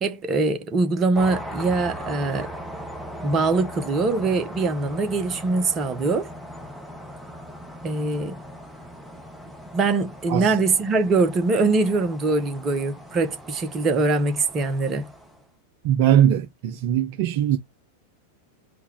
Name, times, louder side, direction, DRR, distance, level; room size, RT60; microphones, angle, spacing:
voice 1, 0.0-2.5 3.2-6.3 7.8-8.4 9.7-15.1, right 3 dB, 25° right, 0.8 m, -23 dB
sound 1, 1.1-15.4, equal, ahead, 0.9 m, -39 dB
voice 2, 15.8-17.6, right 10 dB, 50° right, 0.4 m, -20 dB
3.9 x 2.3 x 4.2 m
figure-of-eight pair, 90°, 0 cm